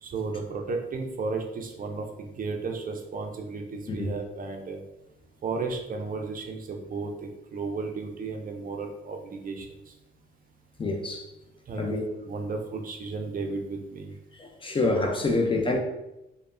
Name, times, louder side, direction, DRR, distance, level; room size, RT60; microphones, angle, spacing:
voice 1, 0.0-4.8 5.4-9.9 11.7-14.1 15.7-15.8, right 4 dB, 45° right, 3 dB, 0.4 m, -34 dB
voice 2, 10.8-11.3 11.8-12.0 14.4-15.8, left 2 dB, 25° left, 2 dB, 0.4 m, -26 dB
3.1 x 2.1 x 2.4 m, 0.93 s
cardioid pair, 80°, 21 cm